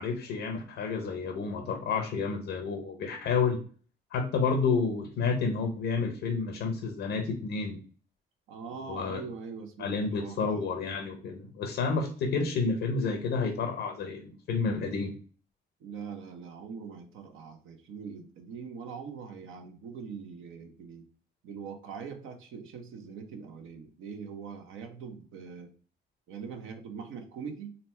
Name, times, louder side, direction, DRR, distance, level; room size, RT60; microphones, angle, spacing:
voice 1, 0.0-3.6 4.1-7.8 8.9-9.2 9.8-15.1, left 4 dB, 85° left, 3 dB, 0.8 m, -30 dB
voice 2, 8.5-10.7 15.8-21.1 21.4-25.7 26.3-27.8, right 6 dB, 85° right, 5 dB, 0.8 m, -42 dB
4.0 x 2.2 x 4.1 m, 0.42 s
cardioid pair, 90°, 20 cm